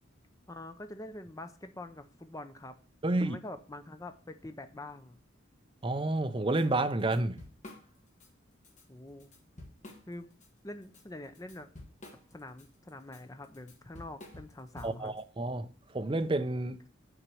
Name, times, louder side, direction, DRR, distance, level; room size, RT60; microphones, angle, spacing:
voice 1, 0.5-2.7 3.0-5.2 8.9-9.3 10.1-10.3 10.6-11.7 12.3-15.1, left 1 dB, 15° left, 0.7 m, -45 dB
voice 2, 3.0-3.4 5.8-7.4 14.8-15.7 15.9-16.8, right 2 dB, 25° right, 0.5 m, -30 dB
Drum kit / Drum, 6.6-6.7 7.0-8.3 8.6-8.8 9.2-10.5 10.8-15.2, left 1 dB, 35° left, 1.7 m, -51 dB
7.1 x 4.5 x 6.9 m
head